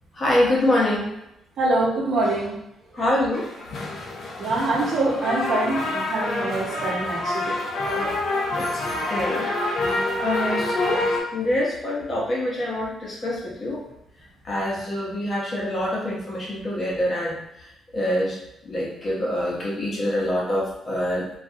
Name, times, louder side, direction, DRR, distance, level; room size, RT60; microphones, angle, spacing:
voice 1, 0.1-1.1 2.9-3.5 7.9-8.1 8.6-8.7 9.1-9.5 10.2-11.1 11.3-13.8 14.4-17.4 17.9-18.4 18.6-21.3, left 1 dB, 35° left, -5 dB, 0.9 m, -25 dB
voice 2, 1.6-2.6 4.4-7.6, right 2 dB, 60° right, -3 dB, 0.7 m, -24 dB
sound 1, 3.3-11.2, left 2 dB, 60° left, 0.5 m, -27 dB
2.4 x 2.2 x 2.7 m, 0.86 s
cardioid pair, 90°, 0 cm